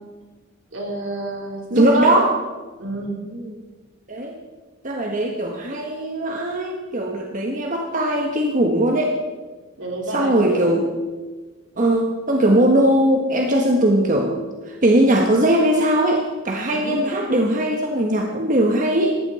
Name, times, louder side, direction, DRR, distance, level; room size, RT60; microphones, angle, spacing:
voice 1, 0.7-2.1 2.8-3.2 9.8-10.6 16.7-17.1, right 1 dB, 75° right, -1 dB, 3.9 m, -27 dB
voice 2, 1.8-2.3 3.3-3.6 4.1-4.4 4.8-9.1 10.1-10.9 11.8-19.2, right 1 dB, 40° right, 1 dB, 1.4 m, -19 dB
18.5 x 15.0 x 4.3 m, 1.3 s
head